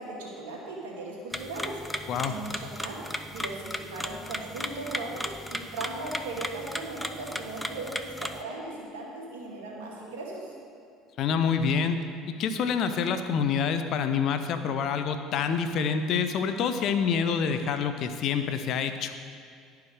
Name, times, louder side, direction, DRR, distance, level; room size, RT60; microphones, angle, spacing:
voice 1, 0.0-1.8 2.3-3.0 3.3-10.5, right 2 dB, 85° right, -3 dB, 1.8 m, -38 dB
sound 1, 1.3-8.4, equal, 5° left, 0.5 m, -36 dB
voice 2, 11.2-12.0 12.3-19.1, left 6 dB, 60° left, 9 dB, 0.6 m, -27 dB
11.5 x 4.7 x 4.8 m, 2.2 s
supercardioid pair, 80°, 0 cm